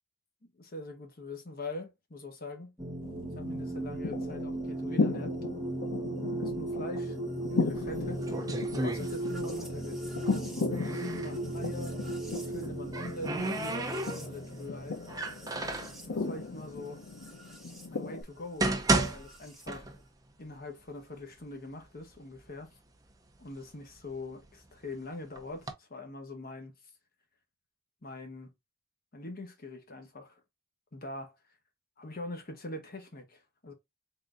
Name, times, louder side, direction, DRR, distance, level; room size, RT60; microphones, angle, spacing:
voice 1, 0.5-2.7 3.3-5.4 6.4-7.2 7.6-8.4 8.7-10.2 10.7-12.0 12.4-15.0 16.0-17.0 17.9-18.7 19.1-19.9 20.4-22.8 23.4-26.7 28.0-28.5 29.1-30.4 30.9-31.4 32.0-33.7, left 2 dB, 50° left, 1.2 m, -43 dB
sound 1, 2.8-17.9 19.0-19.7, right 2 dB, ahead, 1.1 m, -37 dB
sound 2, 3.0-18.2, left 4 dB, 90° left, 0.7 m, -37 dB
sound 3, 7.7-9.6 9.9-11.4 12.5-14.5 15.1-16.0 16.8-16.9 17.5-17.6 18.3-20.3 20.6-20.7 21.4-21.5 21.9-22.5 23.0-24.7 25.4-25.7, right 2 dB, 20° right, 0.6 m, -33 dB
3.9 x 3.7 x 2.4 m
head